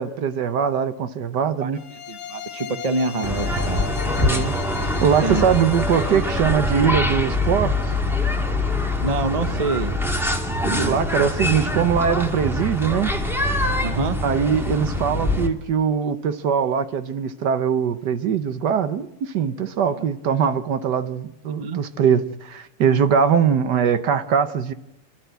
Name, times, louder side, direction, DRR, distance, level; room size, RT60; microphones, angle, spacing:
voice 1, 0.0-1.8 4.2-4.5 5.0-7.7 10.8-13.1 14.2-24.7, right 7 dB, 60° right, 12 dB, 1.3 m, -21 dB
sound 1, 1.7-6.5, left 10 dB, 75° left, 1.9 m, -36 dB
voice 2, 2.1-4.0 5.2-5.5 9.0-9.9 10.6-11.3 13.8-14.2 19.9-20.0 21.6-21.8, right 3 dB, 45° right, 11 dB, 0.5 m, -26 dB
sound 2, 3.2-15.5, left 1 dB, ahead, 2.0 m, -24 dB
29.0 x 12.5 x 8.1 m, 0.92 s
omnidirectional pair, 2.4 m